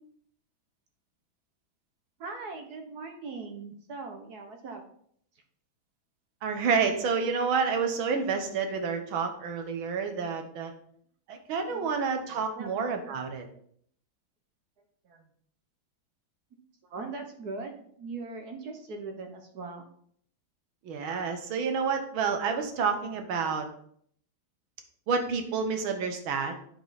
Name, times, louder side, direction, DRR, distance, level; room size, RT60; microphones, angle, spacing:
voice 1, 2.2-4.8 11.7-12.8 15.0-15.3 16.8-19.8 21.2-21.3 23.1-23.5, right 3 dB, 60° right, 5 dB, 1.3 m, -41 dB
voice 2, 6.4-10.7 11.3-13.5 20.8-23.7 25.1-26.5, right 5 dB, 80° right, 5 dB, 1.9 m, -29 dB
8.6 x 5.2 x 4.0 m, 0.64 s
omnidirectional pair, 2.2 m